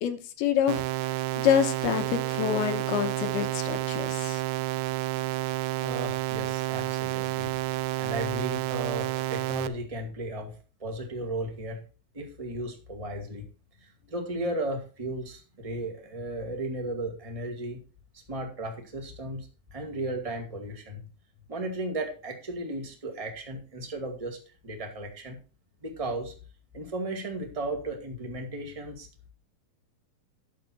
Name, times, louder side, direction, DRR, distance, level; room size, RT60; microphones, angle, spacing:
voice 1, 0.0-4.4, left 9 dB, 85° left, 9 dB, 3.1 m, -27 dB
sound 1, 0.7-9.7, right 18 dB, 80° right, 1.9 m, -30 dB
voice 2, 5.8-11.8 12.1-13.5 13.8-17.8 18.3-21.0 21.5-24.4 24.6-25.4 25.8-26.3 26.7-29.1, right 1 dB, 15° right, 3 dB, 1.1 m, -35 dB
11.0 x 7.3 x 4.4 m, 0.35 s
omnidirectional pair, 4.4 m